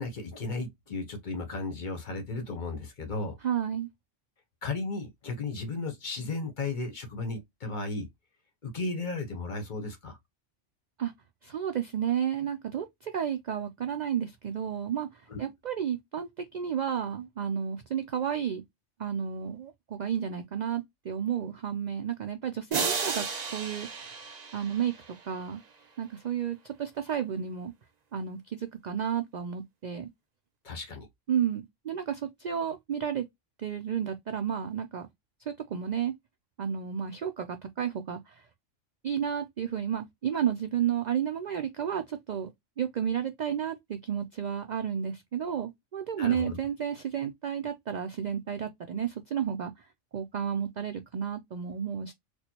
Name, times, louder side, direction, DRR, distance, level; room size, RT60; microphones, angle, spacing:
voice 1, 0.0-3.4 4.6-8.1 8.6-10.2 15.3-15.4 30.6-31.1 46.1-46.6, left 3 dB, 45° left, 0.9 m, -35 dB
voice 2, 3.4-3.9 11.0-11.1 11.4-18.6 19.0-24.2 24.5-24.9 25.2-25.6 26.0-27.7 28.1-30.1 31.3-33.3 33.6-35.1 35.5-36.1 36.6-38.4 39.0-42.5 42.8-49.9 50.1-52.1, right 8 dB, 70° right, 0.4 m, -32 dB
sound 1, 22.7-25.6, right 5 dB, 40° right, 0.7 m, -33 dB
4.3 x 2.3 x 2.8 m
omnidirectional pair, 1.3 m